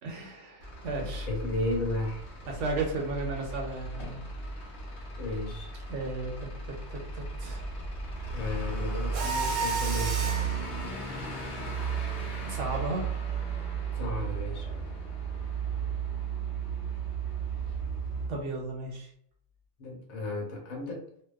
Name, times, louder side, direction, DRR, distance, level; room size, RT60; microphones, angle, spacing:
voice 1, 0.0-1.3 2.5-4.2 5.9-7.6 11.3-11.8 12.4-13.2 18.3-19.1, right 3 dB, 65° right, 0 dB, 0.8 m, -35 dB
Truck / Idling, 0.6-18.3, right 5 dB, 60° left, 0.9 m, -34 dB
voice 2, 1.3-2.2 5.2-5.7 8.3-10.6 13.9-14.7 19.8-21.1, left 2 dB, 75° left, -1 dB, 1.2 m, -34 dB
Mechanisms, 9.1-10.6, right 3 dB, 90° right, 1.0 m, -31 dB
2.6 x 2.1 x 2.2 m, 0.66 s
omnidirectional pair, 1.5 m